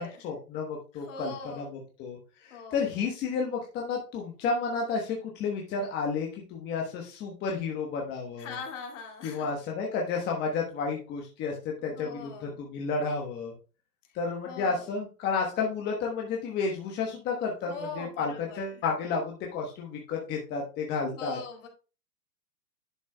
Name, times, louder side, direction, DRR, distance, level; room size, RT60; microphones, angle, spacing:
voice 1, 0.0-8.6 9.2-13.5 14.1-21.4, left 4 dB, 20° left, 0 dB, 1.1 m, -32 dB
voice 2, 0.9-1.7 2.5-2.8 8.4-9.5 11.8-12.6 14.4-14.8 17.7-18.7 21.1-21.7, left 4 dB, 50° left, 2 dB, 2.3 m, -41 dB
11.0 x 6.1 x 2.3 m, 0.32 s
hypercardioid pair, 135°, 49 cm